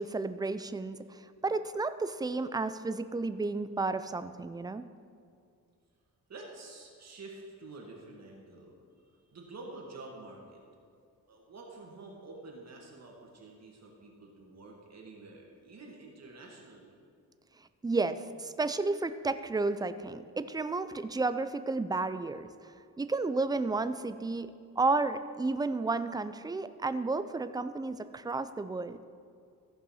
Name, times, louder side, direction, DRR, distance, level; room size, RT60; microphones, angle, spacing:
voice 1, 0.0-4.8 17.8-22.5 23.0-29.0, right 3 dB, 10° right, 12 dB, 0.4 m, -32 dB
voice 2, 6.3-8.8 9.1-10.6 11.3-17.0, right 2 dB, 50° right, -1 dB, 1.9 m, -48 dB
14.5 x 5.6 x 5.6 m, 2.3 s
cardioid pair, 115°, 33 cm